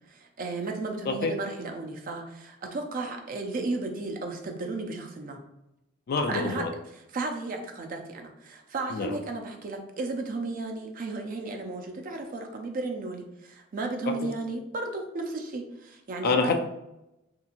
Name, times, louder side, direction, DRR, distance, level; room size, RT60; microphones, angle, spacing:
voice 1, 0.1-5.4 6.3-16.5, right 3 dB, 45° right, 3 dB, 0.4 m, -34 dB
voice 2, 6.1-6.7 8.9-9.1 16.2-16.6, left 4 dB, 50° left, 5 dB, 0.3 m, -26 dB
2.8 x 2.7 x 2.5 m, 0.88 s
head